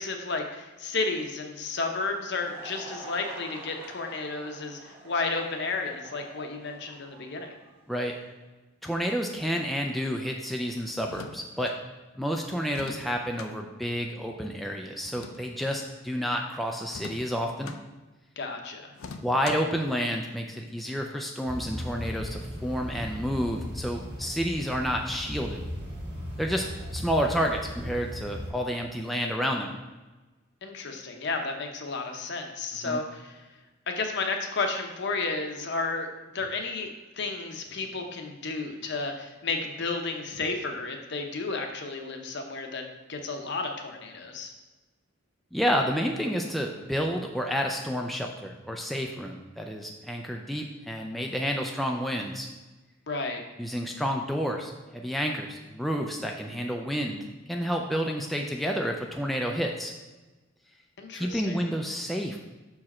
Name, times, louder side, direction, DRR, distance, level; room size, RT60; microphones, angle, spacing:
voice 1, 0.0-7.5 18.4-18.9 30.6-33.4 33.9-36.1 36.3-36.9 37.1-44.5 53.1-53.4 61.0-61.6, left 3 dB, 55° left, 4 dB, 0.8 m, -32 dB
Laughter / Crowd, 2.0-8.3, right 2 dB, 30° right, 1.5 m, -47 dB
voice 2, 8.8-11.7 12.2-17.8 19.2-25.6 26.4-26.6 26.9-29.7 32.8-33.0 45.5-52.5 53.6-57.2 57.5-59.9 61.1-62.4, equal, ahead, 1 dB, 0.3 m, -30 dB
sound 1, 11.0-11.8 12.7-13.5 15.0-15.8 16.9-17.8 18.9-19.8, left 4 dB, 85° left, 0.5 m, -43 dB
sound 2, 21.5-28.5, equal, 55° right, 1.7 m, -37 dB
6.2 x 4.8 x 4.2 m, 1.2 s
head